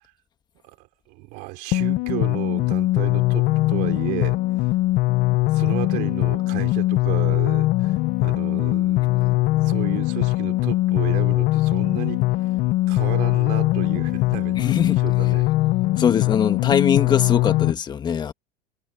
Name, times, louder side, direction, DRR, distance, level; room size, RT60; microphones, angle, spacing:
voice 1, 0.6-4.4 5.4-12.5 12.9-15.5, right 23 dB, 60° right, 3.4 m, -33 dB
sound 1, 1.7-17.7, left 18 dB, 50° left, 0.7 m, -21 dB
voice 2, 14.5-15.0 16.0-18.3, left 7 dB, 25° left, 1.5 m, -22 dB
supercardioid pair, 145°, 17 cm